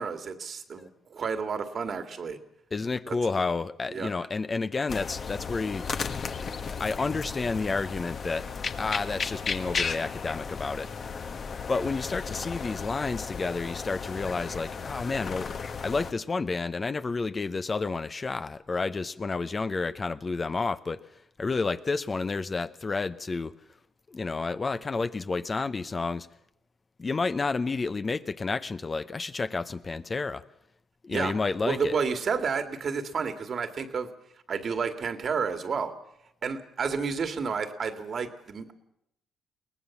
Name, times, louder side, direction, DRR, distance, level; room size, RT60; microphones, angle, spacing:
voice 1, 0.0-2.4 3.1-3.4 3.9-4.1 31.1-31.3 31.6-34.1 34.5-35.9 36.4-38.7, right 5 dB, 50° right, 8 dB, 2.0 m, -31 dB
voice 2, 2.7-5.9 6.4-6.5 6.8-8.5 8.7-10.9 11.7-15.5 15.8-21.0 21.4-23.5 24.1-26.3 27.0-30.4 31.0-32.0, left 4 dB, 30° left, 12 dB, 0.8 m, -30 dB
sound 1, 4.9-16.1, left 5 dB, 45° left, 1.3 m, -35 dB
22.5 x 18.5 x 7.2 m, 0.79 s
cardioid pair, 90°, 0 cm